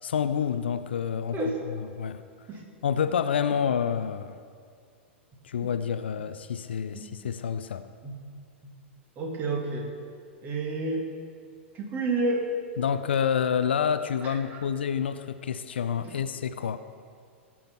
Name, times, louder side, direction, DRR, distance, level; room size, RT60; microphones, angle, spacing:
voice 1, 0.0-1.4 2.0-2.2 2.8-4.3 5.4-7.8 12.8-16.8, left 7 dB, 60° left, 11 dB, 0.5 m, -28 dB
voice 2, 9.2-10.0 10.4-11.1 11.7-12.5 14.2-14.6 16.0-16.2, right 2 dB, 25° right, 1 dB, 2.1 m, -30 dB
16.5 x 8.8 x 4.5 m, 2.2 s
figure-of-eight pair, 100°, 6 cm